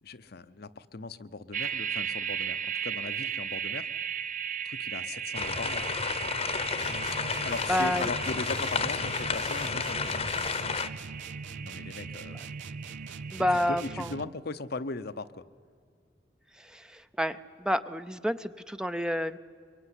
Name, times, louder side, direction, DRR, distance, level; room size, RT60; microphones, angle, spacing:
voice 1, 0.0-3.9 4.6-5.8 7.4-10.2 11.6-12.5 13.5-15.4, left 3 dB, 55° left, 11 dB, 0.8 m, -38 dB
sound 1, 1.5-14.0, right 8 dB, 45° right, 0.8 m, -37 dB
sound 2, 5.3-10.9, left 5 dB, 35° left, 1.0 m, -31 dB
sound 3, 6.8-14.5, right 4 dB, 75° right, 0.6 m, -42 dB
voice 2, 7.7-8.1 13.3-14.1 16.5-19.4, left 1 dB, 5° right, 11 dB, 0.6 m, -29 dB
24.0 x 23.0 x 9.9 m, 2.1 s
head